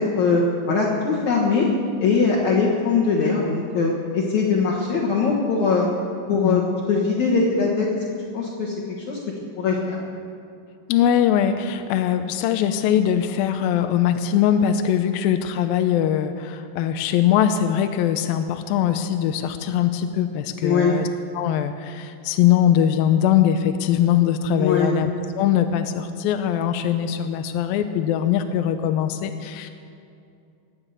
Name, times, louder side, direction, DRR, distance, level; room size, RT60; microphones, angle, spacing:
voice 1, 0.0-1.7 2.0-5.9 6.3-6.6 6.9-7.9 8.3-8.7 9.1-9.2 9.6-10.0 20.6-20.9 24.6-25.0, left 4 dB, 60° left, -4 dB, 2.5 m, -21 dB
voice 2, 6.3-6.6 10.9-21.1 21.3-25.1 25.4-29.7, left 10 dB, 80° left, 8 dB, 2.4 m, -21 dB
20.0 x 7.4 x 8.1 m, 2.6 s
omnidirectional pair, 4.2 m